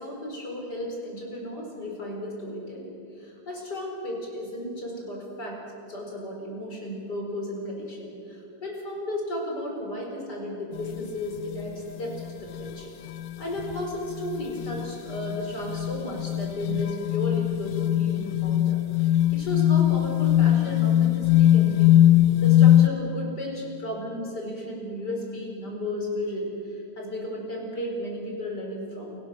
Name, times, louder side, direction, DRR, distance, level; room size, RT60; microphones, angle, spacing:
voice 1, 0.0-5.6 5.9-12.9 13.4-18.8 19.3-22.0 22.4-29.2, left 1 dB, 60° left, 0 dB, 5.5 m, -34 dB
sound 1, 10.7-11.0 11.4-11.7 12.2-12.3 12.6-12.7 13.1-22.9, left 12 dB, 75° left, 1.4 m, -21 dB
29.0 x 17.0 x 6.6 m, 2.8 s
omnidirectional pair, 2.1 m